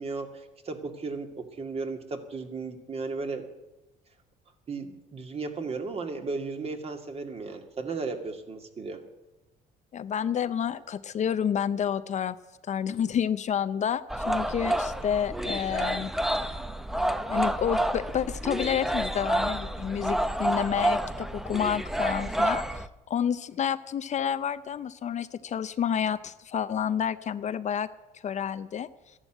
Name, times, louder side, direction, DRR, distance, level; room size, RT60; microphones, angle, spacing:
voice 1, 0.0-3.4 4.7-9.0, right 4 dB, 35° right, 5 dB, 2.1 m, -35 dB
voice 2, 9.9-12.4 12.7-16.1 17.3-27.9 28.2-28.9, left 8 dB, 45° left, 13 dB, 0.6 m, -29 dB
sound 1, 14.1-22.9, right 1 dB, ahead, 0.7 m, -29 dB
13.5 x 11.0 x 9.1 m, 1.0 s
cardioid pair, 110°, 17 cm